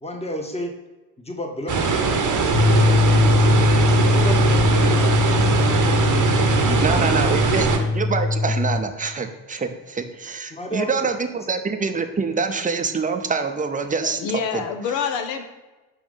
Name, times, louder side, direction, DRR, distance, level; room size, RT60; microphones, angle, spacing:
voice 1, 0.0-0.8 1.2-3.0 3.8-5.5 10.5-11.1 11.4-11.5, equal, 15° left, 3 dB, 1.1 m, -32 dB
sound 1, 1.7-7.8, right 5 dB, 40° right, 0.9 m, -21 dB
sound 2, 2.5-8.8, left 3 dB, 30° left, 1.4 m, -20 dB
voice 2, 6.8-7.7 7.9-14.2 14.5-14.6, right 5 dB, 15° right, 7 dB, 0.7 m, -25 dB
voice 3, 13.8-15.4, left 6 dB, 65° left, 7 dB, 0.8 m, -27 dB
5.0 x 3.6 x 5.1 m, 1.1 s
hypercardioid pair, 45°, 47 cm